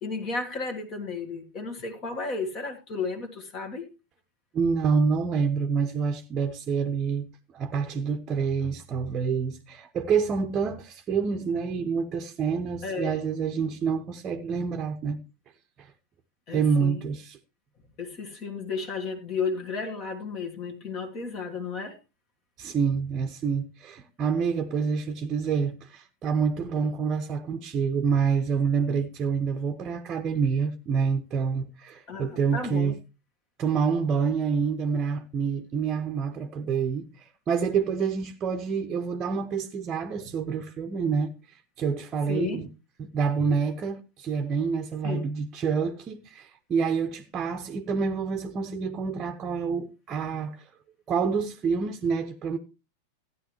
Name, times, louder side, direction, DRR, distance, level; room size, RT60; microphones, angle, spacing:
voice 1, 0.0-3.9 12.8-13.2 16.5-17.0 18.0-22.0 32.1-33.0 42.3-42.6 45.0-45.3, left 4 dB, 35° left, 1.7 m, -33 dB
voice 2, 4.5-7.3 7.5-15.2 15.8-15.9 16.5-17.4 22.6-33.0 33.6-42.7 43.0-50.7 51.1-52.6, right 6 dB, 25° right, 0.9 m, -27 dB
14.0 x 9.9 x 3.1 m
figure-of-eight pair, 90°, 0 cm